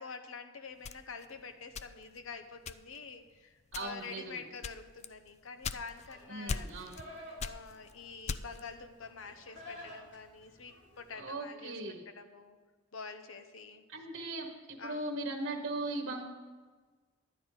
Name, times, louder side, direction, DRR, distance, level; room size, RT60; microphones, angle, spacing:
voice 1, 0.0-6.7 7.4-11.8 12.1-12.6 12.9-13.8 14.8-15.0, left 5 dB, 80° left, 8 dB, 0.9 m, -47 dB
sound 1, 0.8-2.2 2.6-3.1 3.7-4.1 4.6-6.1 6.5-7.1 7.4-8.7, left 5 dB, 35° left, 0.3 m, -39 dB
voice 2, 3.7-4.4 6.3-7.0 11.1-12.0 13.9-16.2, right 2 dB, 70° right, 1 dB, 1.2 m, -39 dB
Livestock farm animals working animals, 6.1-11.2, left 1 dB, 60° left, 2.7 m, -52 dB
11.5 x 9.2 x 4.8 m, 1.4 s
head